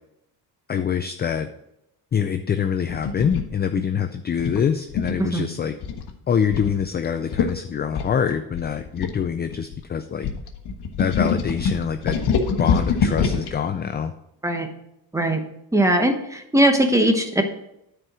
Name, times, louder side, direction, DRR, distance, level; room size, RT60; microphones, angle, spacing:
voice 1, 0.7-1.5 2.1-5.8 6.3-10.3 11.0-12.2 12.6-14.1, left 7 dB, 25° left, 8 dB, 0.3 m, -25 dB
sound 1, 2.9-3.5 4.4-5.3 5.8-6.1 6.5-6.7 7.0-7.1 7.3-7.5 8.0-9.8 10.2-13.5, left 5 dB, 65° left, 1.3 m, -24 dB
voice 2, 15.7-17.4, right 1 dB, 5° right, 5 dB, 1.0 m, -19 dB
9.7 x 4.6 x 6.1 m, 0.81 s
cardioid pair, 130°, 42 cm